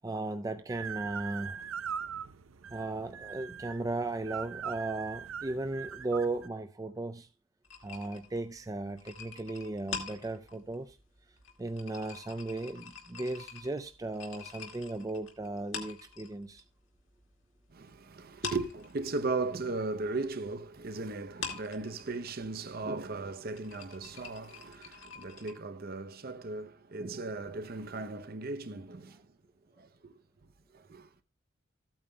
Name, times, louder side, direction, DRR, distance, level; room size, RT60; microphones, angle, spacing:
voice 1, 0.0-1.6 2.7-7.3 7.8-11.0 11.6-16.6, right 2 dB, 15° right, 0.4 m, -36 dB
sound 1, 0.7-6.5, right 7 dB, 80° right, 0.6 m, -41 dB
sound 2, 7.6-16.7 16.9-18.0 18.3-25.5, left 6 dB, 70° left, 2.0 m, -45 dB
voice 2, 17.7-29.2 29.8-30.1 30.9-31.1, right 3 dB, 45° right, 0.7 m, -37 dB
15.0 x 8.7 x 2.2 m
head